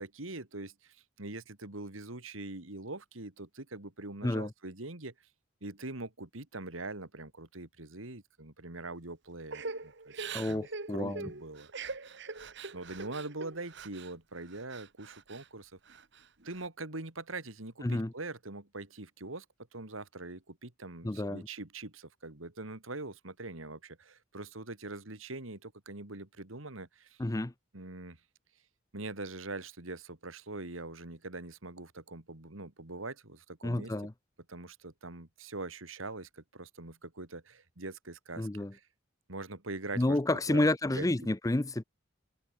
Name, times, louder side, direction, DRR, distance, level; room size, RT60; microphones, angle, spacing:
voice 1, 0.0-5.1 5.6-11.7 12.7-15.8 16.4-19.5 19.7-27.2 27.7-28.2 28.9-33.9 34.5-38.9 39.3-40.2 40.5-41.1, right 2 dB, 85° right, 2.7 m, -43 dB
Crying sobbing / Breathing, 9.5-14.1 14.5-15.5 15.9-16.6, right 4 dB, 60° right, 2.0 m, -42 dB
voice 2, 10.3-11.3 17.8-18.1 21.0-21.5 27.2-27.5 33.6-34.1 38.4-38.7 40.0-41.8, left 1 dB, 15° left, 0.6 m, -30 dB
head